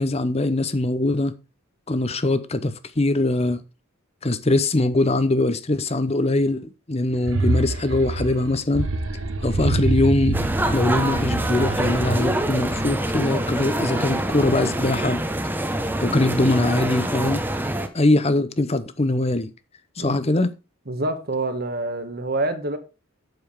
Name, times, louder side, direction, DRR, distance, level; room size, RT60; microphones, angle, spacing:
voice 1, 0.0-1.4 1.9-3.6 4.2-8.9 9.4-10.4 10.7-15.2 16.0-17.4 17.9-19.5 20.0-20.5, left 2 dB, 30° left, 0.8 m, -22 dB
sound 1, 7.1-13.4, right 2 dB, 70° right, 1.1 m, -27 dB
sound 2, 10.3-17.9, right 1 dB, 10° right, 0.9 m, -25 dB
voice 2, 20.9-22.8, right 2 dB, 45° right, 1.4 m, -26 dB
7.9 x 7.0 x 4.9 m
head